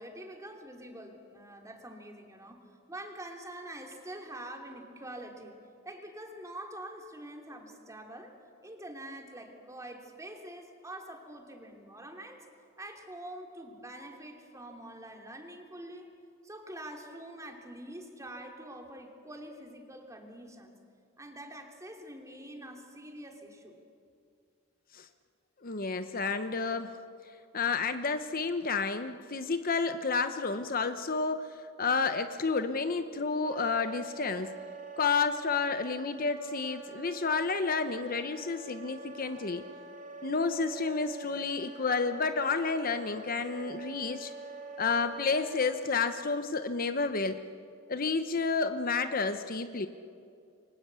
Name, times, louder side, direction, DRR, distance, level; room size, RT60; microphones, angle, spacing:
voice 1, 0.0-5.6 5.8-8.3 8.6-12.5 12.8-16.1 16.4-20.8 21.2-23.8, right 1 dB, 15° right, 3 dB, 3.0 m, -45 dB
voice 2, 25.6-27.0 27.5-31.5 31.8-34.5 35.0-39.6 40.2-44.3 44.8-47.4 47.9-49.9, left 4 dB, 45° left, 9 dB, 0.9 m, -30 dB
Wind instrument woodwind instrument, 33.4-46.3, right 3 dB, 40° right, 3.0 m, -46 dB
28.0 x 24.0 x 8.3 m, 2.4 s
head